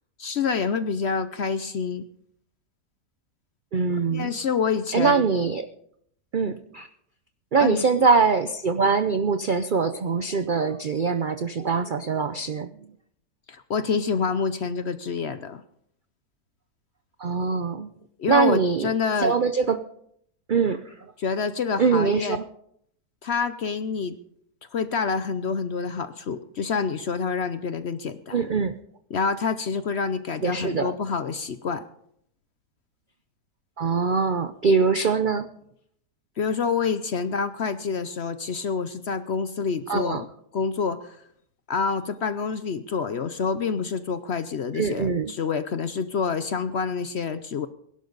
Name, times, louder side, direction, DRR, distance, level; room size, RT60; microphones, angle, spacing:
voice 1, 0.2-2.0 4.1-5.2 7.6-7.9 13.5-15.6 18.2-19.4 21.2-22.4 23.2-24.2 24.7-28.4 29.1-31.8 36.4-40.3 40.5-41.2 41.7-47.7, left 5 dB, 55° left, 12 dB, 0.8 m, -27 dB
voice 2, 3.7-4.3 4.9-5.7 6.3-6.9 7.5-12.7 17.2-17.9 18.3-18.9 19.2-19.8 20.5-20.9 21.8-22.4 28.3-28.7 30.4-30.9 33.8-35.5 39.9-40.2 44.7-45.3, right 5 dB, 60° right, 9 dB, 0.5 m, -23 dB
22.0 x 11.5 x 4.0 m, 0.70 s
omnidirectional pair, 1.7 m